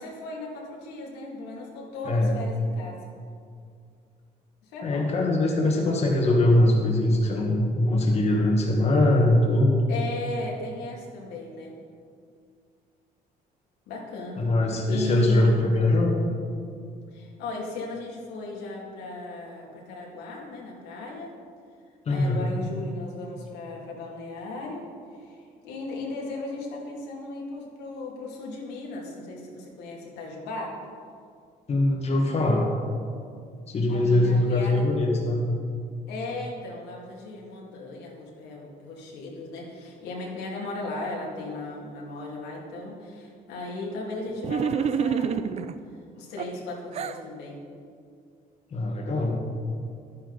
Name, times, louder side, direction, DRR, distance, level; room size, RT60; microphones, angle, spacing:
voice 1, 0.0-3.0 4.7-5.1 9.9-11.7 13.9-14.5 14.9-15.8 17.1-21.3 22.1-24.9 25.2-25.4 25.6-30.7 33.9-34.8 36.1-45.6 46.1-47.6, left 2 dB, 90° left, -3 dB, 2.3 m, -36 dB
voice 2, 2.0-2.4 4.8-9.8 14.4-16.1 22.0-22.5 31.7-32.7 33.7-35.4 48.7-49.4, left 1 dB, 40° left, -1 dB, 1.6 m, -22 dB
sound 1, 44.4-45.8 46.4-47.2, right 7 dB, 40° right, 0.5 m, -27 dB
11.5 x 9.8 x 4.0 m, 2.3 s
cardioid pair, 110°, 17 cm